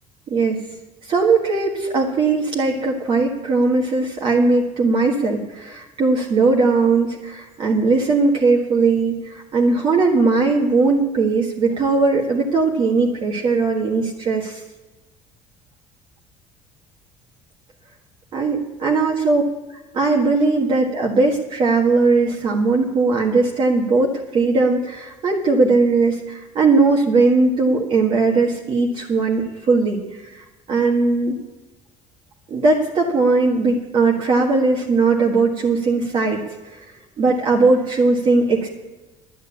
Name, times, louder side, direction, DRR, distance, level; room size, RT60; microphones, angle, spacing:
voice 1, 1.0-14.6 18.3-19.4 19.7-31.4 32.5-36.8 37.2-38.7, right 3 dB, 40° right, -1 dB, 1.6 m, -19 dB
11.0 x 9.4 x 8.4 m, 1.1 s
cardioid pair, 140°, 13 cm